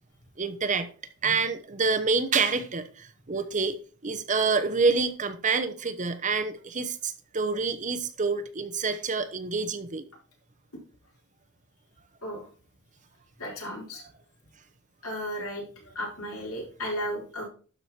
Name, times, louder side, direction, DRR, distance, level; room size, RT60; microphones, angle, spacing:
voice 1, 0.4-0.9 1.2-3.8 4.0-10.0, right 4 dB, 35° right, 0.8 m, -27 dB
voice 2, 13.4-14.0 15.0-17.5, equal, 75° left, 4.2 m, -35 dB
12.0 x 4.8 x 4.4 m
head